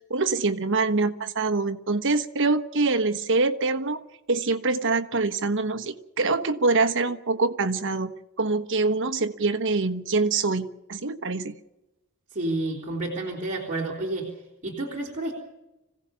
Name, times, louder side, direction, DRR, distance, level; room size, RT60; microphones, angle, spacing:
voice 1, 0.1-4.0 4.3-8.1 8.4-11.5, right 3 dB, 60° right, 10 dB, 1.3 m, -25 dB
voice 2, 12.3-14.3 14.6-15.3, right 2 dB, 35° right, -5 dB, 3.8 m, -30 dB
25.5 x 16.5 x 7.0 m, 0.99 s
head